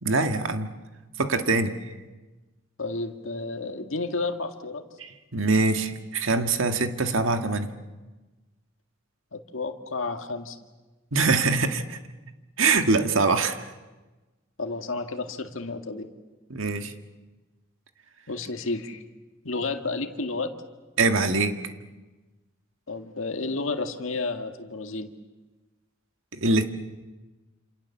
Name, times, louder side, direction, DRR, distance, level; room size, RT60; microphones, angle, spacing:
voice 1, 0.0-0.7 1.2-1.7 5.0-7.7 11.1-12.0 12.6-13.6 16.5-16.9 21.0-21.7 26.3-26.6, right 3 dB, 75° right, 7 dB, 1.7 m, -23 dB
voice 2, 2.8-4.8 9.3-10.6 14.6-16.1 18.3-19.0 19.4-20.5 22.9-25.1, left 3 dB, 75° left, 5 dB, 1.9 m, -31 dB
28.0 x 27.5 x 7.2 m, 1.2 s
head